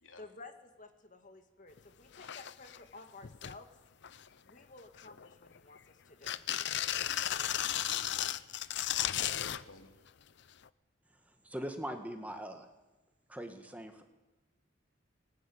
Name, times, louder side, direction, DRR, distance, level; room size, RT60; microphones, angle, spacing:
voice 1, 0.2-3.7 4.4-6.3 7.0-7.5, left 3 dB, 40° left, 6 dB, 2.2 m, -53 dB
sound 1, 1.8-1.9 2.1-2.8 3.2-3.6 4.0-4.5 5.0-5.8 6.2-9.6 10.7-10.8, left 11 dB, 60° left, 0.6 m, -35 dB
voice 2, 6.9-7.2 7.9-8.3 9.0-10.0, left 2 dB, 80° left, 5 dB, 2.9 m, -55 dB
voice 3, 11.4-12.7 13.3-14.0, equal, 10° right, 5 dB, 1.9 m, -41 dB
19.5 x 17.5 x 9.8 m, 1.1 s
head